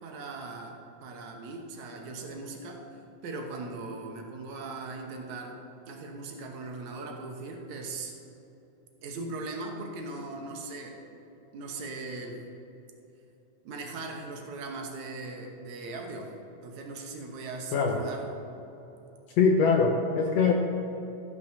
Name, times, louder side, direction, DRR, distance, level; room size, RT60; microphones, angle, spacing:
voice 1, 0.0-2.8 3.2-5.6 5.9-8.2 9.0-11.2 11.5-12.4 13.6-16.3 16.6-18.3, right 3 dB, 70° right, 2 dB, 2.3 m, -39 dB
voice 2, 17.7-18.0 19.4-20.5, left 5 dB, 75° left, 2 dB, 1.6 m, -23 dB
13.5 x 6.0 x 6.1 m, 3.0 s
omnidirectional pair, 3.7 m